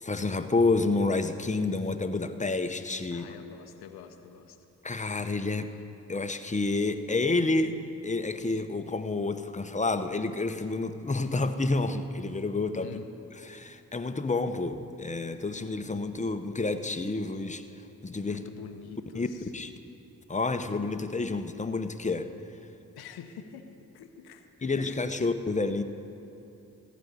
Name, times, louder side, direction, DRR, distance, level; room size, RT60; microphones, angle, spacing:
voice 1, 0.1-3.3 4.8-5.7 6.1-12.9 13.4-17.6 18.0-18.4 19.1-19.3 19.5-19.7 20.3-22.3 24.6-25.8, left 3 dB, 20° left, 9 dB, 0.8 m, -29 dB
voice 2, 3.1-4.6 12.8-13.1 18.3-19.5 23.0-25.3, left 7 dB, 85° left, 7 dB, 0.7 m, -46 dB
15.0 x 5.2 x 9.6 m, 2.8 s
supercardioid pair, 40°, 37 cm